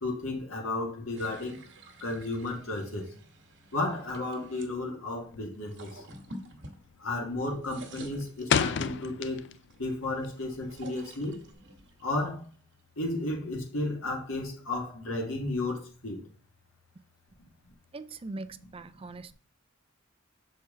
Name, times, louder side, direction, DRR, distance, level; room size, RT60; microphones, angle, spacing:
voice 1, 0.0-1.6 2.0-3.1 3.7-6.0 7.0-9.4 9.8-11.4 12.0-12.5 13.0-16.2 17.4-17.5, left 2 dB, 85° left, 1.6 m, -33 dB
sound 1, 1.2-4.7 5.5-7.3 7.5-9.0 9.5-13.0, right 1 dB, 60° right, 1.3 m, -50 dB
sound 2, 5.3-5.7 6.0-6.3 6.6-7.1 7.4-9.8 10.1-11.5, left 7 dB, 60° left, 0.4 m, -30 dB
voice 2, 17.9-19.3, right 3 dB, 30° right, 0.4 m, -41 dB
6.7 x 4.4 x 3.6 m
head